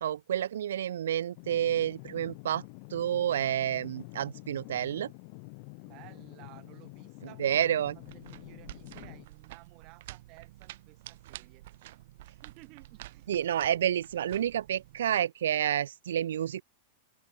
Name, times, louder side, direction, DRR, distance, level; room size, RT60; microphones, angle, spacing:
voice 1, 0.0-2.6 2.9-5.1 7.4-8.0 13.3-16.6, right 10 dB, 90° right, 0.4 m, -29 dB
sound 1, 1.4-9.3, left 34 dB, 50° left, 2.6 m, -48 dB
voice 2, 5.8-11.6 12.2-13.3, right 24 dB, 40° right, 3.6 m, -55 dB
sound 2, 7.8-15.2, right 16 dB, 65° right, 0.9 m, -50 dB
open air
supercardioid pair, 145°, 0 cm